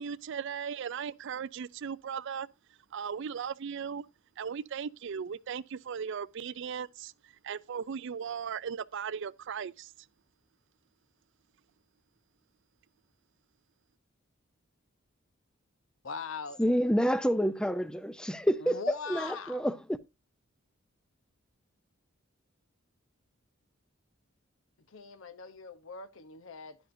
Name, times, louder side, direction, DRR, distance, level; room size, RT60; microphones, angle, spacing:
voice 1, 0.0-2.5 2.9-4.1 4.4-7.1 7.4-9.9, right 7 dB, 60° right, 0.4 m, -37 dB
voice 2, 16.0-16.6 18.6-19.7 24.9-26.8, left 4 dB, 70° left, 0.9 m, -41 dB
voice 3, 16.6-18.8 19.1-19.8, equal, 5° left, 0.5 m, -28 dB
11.5 x 10.5 x 2.6 m
head